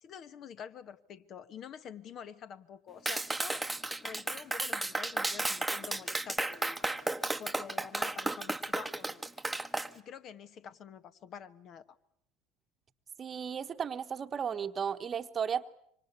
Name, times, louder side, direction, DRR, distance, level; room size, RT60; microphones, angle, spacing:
voice 1, 0.0-3.7 4.0-6.8 7.4-9.3 9.9-11.8, left 8 dB, 50° left, 13 dB, 1.4 m, -47 dB
Clapping, 3.1-9.9, right 2 dB, 5° right, 1.1 m, -33 dB
voice 2, 13.2-15.6, right 7 dB, 35° right, 9 dB, 1.1 m, -34 dB
26.0 x 25.0 x 8.2 m, 0.71 s
hypercardioid pair, 80°, 0 cm